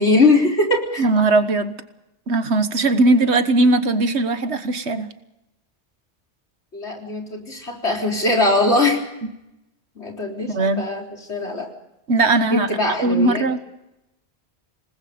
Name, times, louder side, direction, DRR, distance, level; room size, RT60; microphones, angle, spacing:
voice 1, 0.0-1.1 6.7-9.0 10.0-11.7 12.5-13.4, left 2 dB, 80° left, 1 dB, 4.2 m, -21 dB
voice 2, 1.0-1.8 2.3-5.1 10.5-10.8 12.1-12.7 13.0-13.6, right 2 dB, 80° right, 10 dB, 1.7 m, -19 dB
27.0 x 20.0 x 5.2 m, 0.89 s
omnidirectional pair, 1.1 m